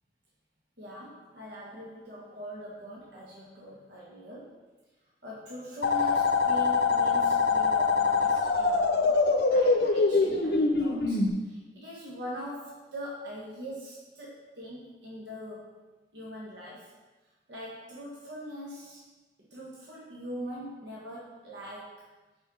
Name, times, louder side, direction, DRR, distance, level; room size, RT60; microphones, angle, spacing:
voice 1, 0.8-4.6 5.2-9.2 9.5-15.7 16.1-16.9 17.5-19.0 19.4-22.0, equal, 85° right, -6 dB, 1.4 m, -42 dB
sound 1, 5.8-11.3, left 4 dB, 70° left, 0.6 m, -24 dB
9.5 x 4.4 x 3.8 m, 1.2 s
head